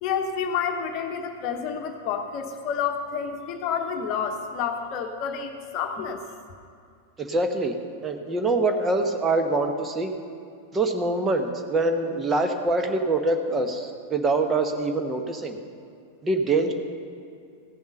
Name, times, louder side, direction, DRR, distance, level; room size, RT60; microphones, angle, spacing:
voice 1, 0.0-6.2, left 7 dB, 40° left, 5 dB, 1.0 m, -29 dB
voice 2, 7.2-10.1 10.7-15.6 16.2-16.7, right 2 dB, 20° right, 5 dB, 0.9 m, -24 dB
15.5 x 7.1 x 5.4 m, 2.4 s
figure-of-eight pair, 90°, 0 cm